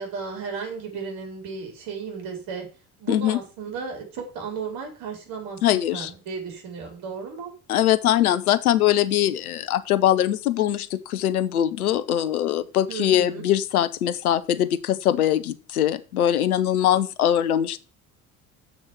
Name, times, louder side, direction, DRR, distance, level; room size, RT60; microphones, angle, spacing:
voice 1, 0.0-2.7 3.0-7.5 12.9-13.4, right 5 dB, 50° right, 2 dB, 4.5 m, -34 dB
voice 2, 3.1-3.4 5.6-6.1 7.7-17.8, left 11 dB, 75° left, 15 dB, 0.9 m, -22 dB
7.3 x 6.4 x 7.3 m, 0.34 s
figure-of-eight pair, 65°, 44 cm